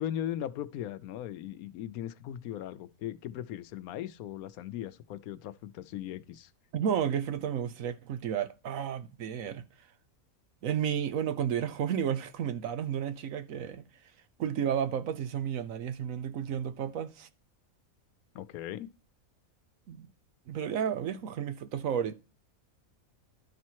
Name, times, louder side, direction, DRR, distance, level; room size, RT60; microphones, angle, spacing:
voice 1, 0.0-6.5 18.3-18.9, left 11 dB, 80° left, 1.1 m, -38 dB
voice 2, 6.7-9.6 10.6-13.8 14.4-17.3 19.9-20.1 20.5-22.1, right 8 dB, 70° right, 1.1 m, -32 dB
12.0 x 4.3 x 4.5 m
omnidirectional pair, 1.5 m